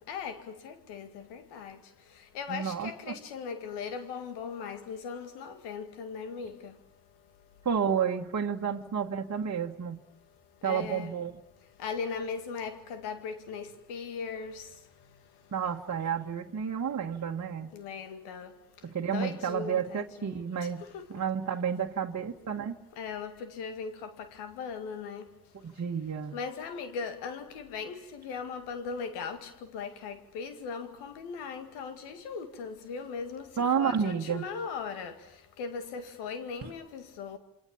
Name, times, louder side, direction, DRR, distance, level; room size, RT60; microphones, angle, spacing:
voice 1, 0.1-1.8 2.3-6.7 10.6-11.1 11.8-14.6 17.7-18.5 19.1-20.3 20.9-21.0 23.0-25.2 26.3-33.5 33.8-35.1 35.6-37.4, left 5 dB, 90° left, 2.1 m, -38 dB
voice 2, 2.5-3.2 7.7-10.0 10.6-11.3 15.5-17.7 18.8-20.8 21.1-22.8 25.6-26.4 33.6-34.5 36.6-36.7, right 7 dB, 45° right, 1.7 m, -31 dB
28.5 x 24.5 x 7.3 m
hypercardioid pair, 45°, 39 cm